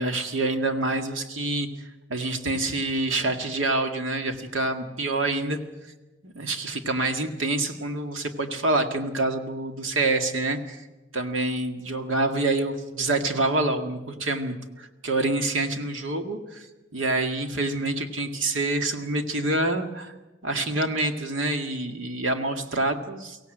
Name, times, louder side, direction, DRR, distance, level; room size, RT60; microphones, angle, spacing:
voice 1, 0.0-1.7 2.1-5.6 6.2-10.9 11.1-16.7 16.9-20.1 20.4-23.4, right 2 dB, 85° right, 5 dB, 2.0 m, -27 dB
23.5 x 17.0 x 7.9 m, 1.1 s
head